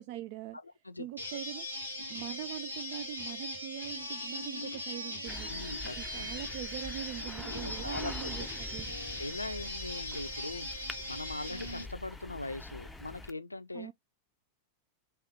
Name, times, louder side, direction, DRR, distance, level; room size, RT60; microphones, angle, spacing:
voice 1, 0.0-0.6 1.0-1.7 2.1-5.5 6.0-9.0 13.7-13.9, right 13 dB, 50° right, 0.4 m, -42 dB
voice 2, 0.6-1.1 5.5-6.4 7.2-8.5 9.2-13.9, left 2 dB, 85° left, 0.4 m, -41 dB
sound 1, 1.2-11.8, left 1 dB, 85° right, 1.7 m, -40 dB
sound 2, 5.3-13.3, left 2 dB, 5° left, 0.6 m, -45 dB
4.6 x 3.0 x 3.3 m
figure-of-eight pair, 90°, 0 cm